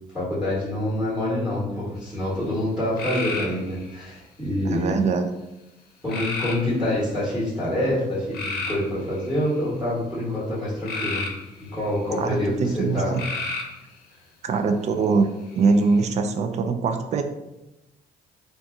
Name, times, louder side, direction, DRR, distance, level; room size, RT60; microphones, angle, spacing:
voice 1, 0.1-4.9 6.0-11.3 11.6-13.2, left 1 dB, ahead, -10 dB, 1.2 m, -26 dB
sound 1, 3.0-4.0 6.1-6.9 8.3-9.6 10.9-12.0 13.1-13.8 15.5-16.0, left 3 dB, 65° left, 0.7 m, -31 dB
voice 2, 4.7-5.3 12.2-13.2 14.4-15.3 15.6-17.2, right 4 dB, 40° right, 7 dB, 0.4 m, -22 dB
2.6 x 2.3 x 3.6 m, 0.94 s
cardioid pair, 110°, 17 cm